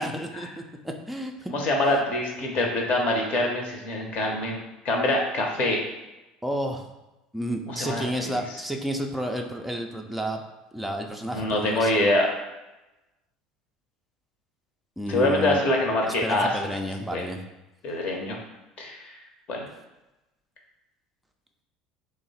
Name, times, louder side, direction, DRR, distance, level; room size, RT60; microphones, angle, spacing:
voice 1, 0.0-1.5 6.4-6.9 7.3-10.4 10.7-12.0 15.0-15.6 16.1-17.4, equal, ahead, 2 dB, 0.4 m, -31 dB
voice 2, 1.5-5.8 7.7-8.4 11.3-12.3 15.1-16.7 17.1-17.2 17.8-18.4 18.8-19.1 19.5-19.6, left 1 dB, 45° left, 0 dB, 0.7 m, -25 dB
3.0 x 2.1 x 4.0 m, 1.0 s
figure-of-eight pair, 70°, 3 cm